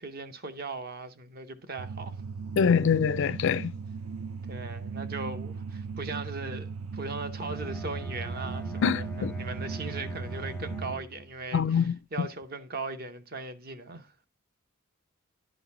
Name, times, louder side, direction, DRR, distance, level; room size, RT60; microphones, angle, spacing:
voice 1, 0.0-2.1 4.5-14.1, right 3 dB, 40° right, 0.7 m, -39 dB
sound 1, 1.8-11.0, right 5 dB, 80° right, 0.5 m, -38 dB
voice 2, 2.6-3.7 8.8-9.3 11.5-12.3, left 6 dB, 55° left, 0.3 m, -25 dB
Bowed string instrument, 7.3-11.4, right 1 dB, 5° left, 0.6 m, -40 dB
11.0 x 4.1 x 4.1 m
head